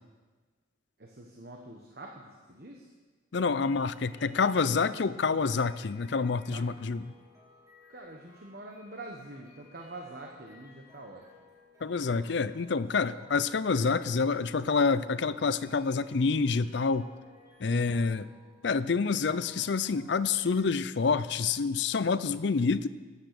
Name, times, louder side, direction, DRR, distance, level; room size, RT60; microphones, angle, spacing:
voice 1, 1.0-2.9 6.5-6.9 7.9-11.4 17.6-18.1, right 2 dB, 50° right, 1 dB, 1.2 m, -46 dB
voice 2, 3.3-7.0 11.8-17.1 17.6-18.3 18.6-22.9, left 4 dB, 60° left, 15 dB, 0.5 m, -27 dB
sound 1, 3.6-20.6, left 3 dB, 15° right, 3.5 m, -59 dB
13.5 x 9.0 x 6.7 m, 1.4 s
head